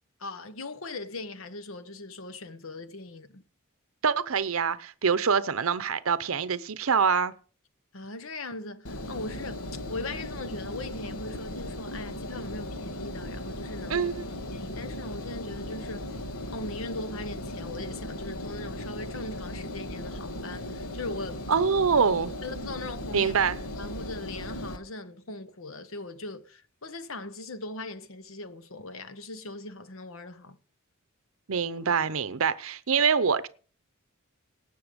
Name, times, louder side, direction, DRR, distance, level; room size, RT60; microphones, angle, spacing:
voice 1, 0.2-3.4 7.9-14.1 14.4-16.2 16.5-21.4 22.4-23.3 23.8-30.6, left 2 dB, 70° left, 1.2 m, -39 dB
voice 2, 4.0-7.3 13.9-14.2 21.5-22.3 23.1-23.6 31.5-33.5, right 6 dB, 75° right, 0.7 m, -25 dB
Engine, 8.9-24.8, left 1 dB, 85° left, 1.5 m, -37 dB
18.5 x 6.7 x 5.2 m
head